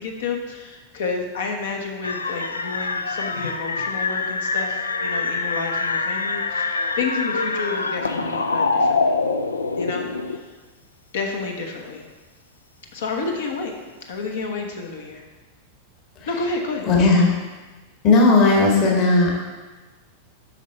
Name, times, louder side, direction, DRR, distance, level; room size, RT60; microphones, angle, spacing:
voice 1, 0.0-9.2 9.8-10.5 11.1-12.0 12.9-13.7 14.1-15.2 16.3-17.1, left 4 dB, 60° left, 2 dB, 1.1 m, -30 dB
sound 1, 2.0-10.4, left 3 dB, 75° left, 0.4 m, -25 dB
voice 2, 16.9-17.3 18.0-19.3, left 3 dB, 35° left, -1 dB, 1.6 m, -16 dB
7.3 x 5.8 x 4.1 m, 1.3 s
figure-of-eight pair, 90°, 0 cm